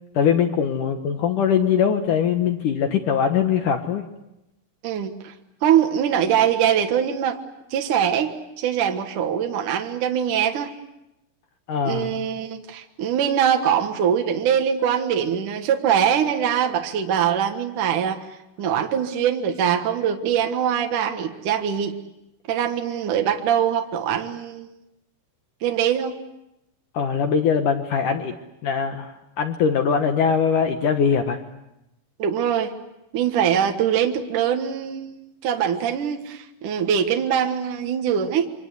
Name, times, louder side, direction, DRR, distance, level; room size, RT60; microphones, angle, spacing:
voice 1, 0.1-4.0 11.7-12.3 26.9-28.3 28.6-31.4, left 7 dB, 75° left, 6 dB, 1.9 m, -21 dB
voice 2, 4.8-5.3 5.6-7.4 7.7-10.7 11.8-18.2 18.6-21.9 22.5-24.7 25.6-26.2 32.2-32.7 33.1-38.5, right 8 dB, 60° right, 4 dB, 2.2 m, -22 dB
28.5 x 25.5 x 8.2 m, 0.89 s
omnidirectional pair, 5.6 m